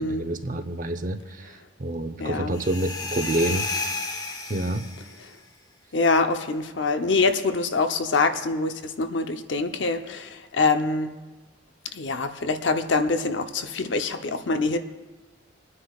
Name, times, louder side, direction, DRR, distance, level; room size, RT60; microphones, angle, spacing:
voice 1, 0.0-1.5 1.8-3.6 4.5-4.8, right 1 dB, 45° right, 7 dB, 0.7 m, -27 dB
voice 2, 2.2-2.6 5.9-11.1 11.9-14.8, left 3 dB, 70° left, 7 dB, 0.8 m, -25 dB
sound 1, 2.5-5.3, left 3 dB, 20° left, 0.9 m, -32 dB
27.5 x 9.8 x 2.4 m, 1.2 s
head